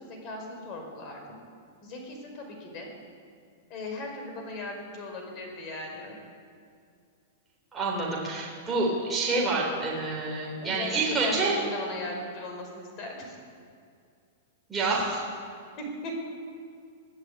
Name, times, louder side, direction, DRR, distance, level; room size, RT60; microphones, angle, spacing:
voice 1, 0.0-1.4 1.8-2.9 3.7-6.2 10.6-13.3 15.8-16.1, left 2 dB, 25° left, 2 dB, 5.0 m, -38 dB
voice 2, 7.7-11.5 14.7-15.2, right 3 dB, 10° right, -5 dB, 3.6 m, -28 dB
22.5 x 14.5 x 8.7 m, 2.3 s
supercardioid pair, 175°, 0 cm